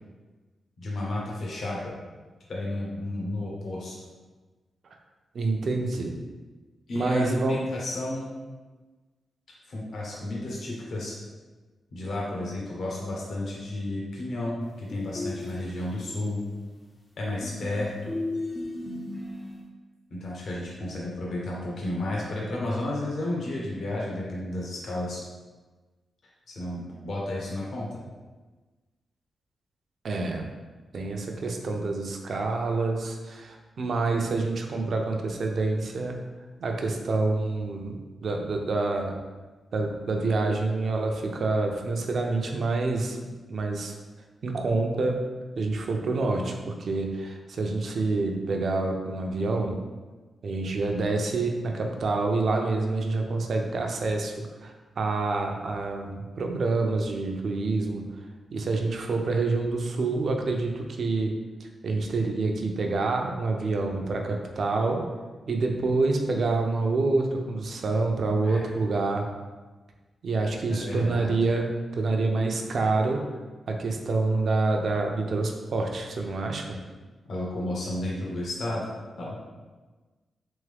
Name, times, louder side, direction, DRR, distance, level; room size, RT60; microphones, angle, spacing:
voice 1, 0.8-1.9 2.5-3.9 6.9-8.3 9.7-11.2 11.9-16.4 17.2-18.2 20.1-25.2 26.5-28.0 68.4-68.6 70.7-71.3 77.3-78.9 79.2-79.4, left 1 dB, 60° left, -4 dB, 0.9 m, -32 dB
voice 2, 5.3-6.2 6.9-7.6 30.0-30.5 30.9-36.2 36.6-38.0 38.2-39.1 39.7-43.2 43.5-43.9 44.4-45.2 45.6-49.8 50.4-58.1 58.5-61.3 61.8-65.0 65.4-69.3 70.2-73.2 73.7-76.8, right 3 dB, 55° right, 2 dB, 0.5 m, -27 dB
sound 1, 14.9-16.2 17.4-19.6, left 2 dB, 25° left, 0.5 m, -35 dB
3.5 x 3.5 x 3.4 m, 1.3 s
wide cardioid pair, 125°, 0 cm